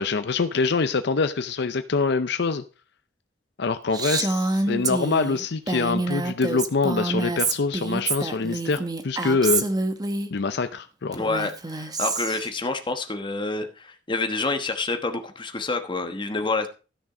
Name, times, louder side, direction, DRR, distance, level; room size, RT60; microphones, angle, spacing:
voice 1, 0.0-2.6 3.6-9.6 10.3-11.2, left 4 dB, 65° left, 10 dB, 0.6 m, -25 dB
Female speech woman speaking, 3.9-10.3 11.1-12.5, right 3 dB, 20° right, 0.9 m, -27 dB
voice 2, 11.1-16.7, left 3 dB, 25° left, 6 dB, 1.2 m, -28 dB
13.5 x 6.1 x 4.9 m, 0.35 s
head